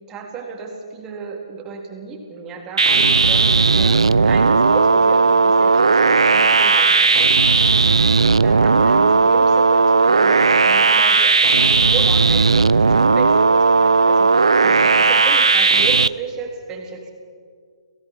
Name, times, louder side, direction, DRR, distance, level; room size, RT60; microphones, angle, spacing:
voice 1, 0.1-7.4 8.4-14.3 14.6-17.1, right 5 dB, 20° right, 1 dB, 3.5 m, -32 dB
sound 1, 2.8-16.1, right 4 dB, 80° right, 0.5 m, -15 dB
28.0 x 17.0 x 5.8 m, 2.1 s
figure-of-eight pair, 135°, 3 cm